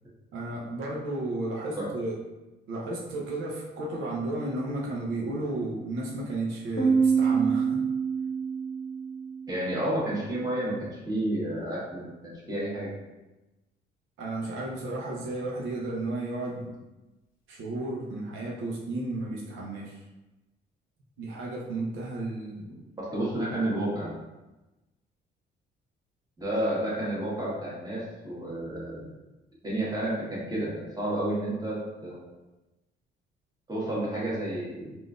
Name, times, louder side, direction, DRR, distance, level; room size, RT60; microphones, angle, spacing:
voice 1, 0.3-2.2 2.7-7.8 14.2-16.7 17.5-20.0 21.2-22.8, right 2 dB, 85° right, -3 dB, 0.6 m, -33 dB
Piano, 6.8-10.2, right 5 dB, 45° left, 0.7 m, -26 dB
voice 2, 9.5-12.9 23.0-24.1 26.4-29.1 29.6-32.3 33.7-35.0, right 1 dB, 20° right, -7 dB, 1.3 m, -31 dB
3.6 x 2.5 x 2.4 m, 1.1 s
cardioid pair, 90°, 20 cm